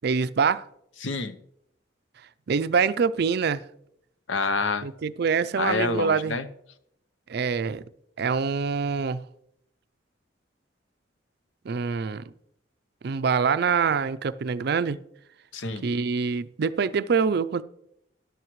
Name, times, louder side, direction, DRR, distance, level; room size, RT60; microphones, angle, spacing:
voice 1, 0.0-0.7 2.5-3.6 4.8-6.4 7.3-7.8 8.2-9.2 11.7-12.2 13.0-15.0 15.8-17.6, right 5 dB, 60° right, 0.4 m, -25 dB
voice 2, 1.0-1.4 4.3-4.9 5.6-6.5 15.5-15.9, left 3 dB, 85° left, 0.8 m, -27 dB
13.5 x 11.0 x 3.1 m
head